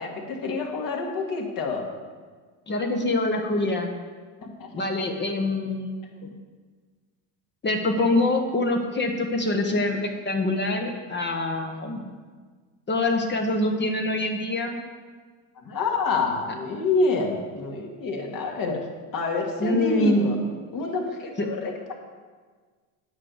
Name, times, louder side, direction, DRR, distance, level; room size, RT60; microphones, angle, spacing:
voice 1, 0.0-1.9 4.4-5.1 15.6-18.8 19.1-20.4 20.7-21.9, left 3 dB, 45° left, 1 dB, 2.2 m, -27 dB
voice 2, 2.7-3.9 4.7-6.3 7.6-12.1 12.9-14.8 19.6-20.5 21.4-21.5, left 2 dB, 25° left, 3 dB, 1.1 m, -25 dB
9.6 x 5.1 x 8.0 m, 1.5 s
supercardioid pair, 100°, 44 cm